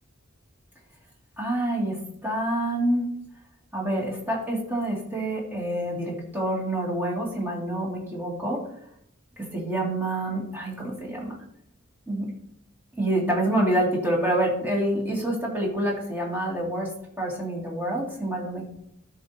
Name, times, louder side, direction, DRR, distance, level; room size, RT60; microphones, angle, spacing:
voice 1, 1.4-3.0 3.7-8.6 9.4-11.3 12.1-12.3 13.0-16.9 17.2-18.7, right 1 dB, 10° right, -4 dB, 2.3 m, -27 dB
13.0 x 5.1 x 2.8 m, 0.73 s
head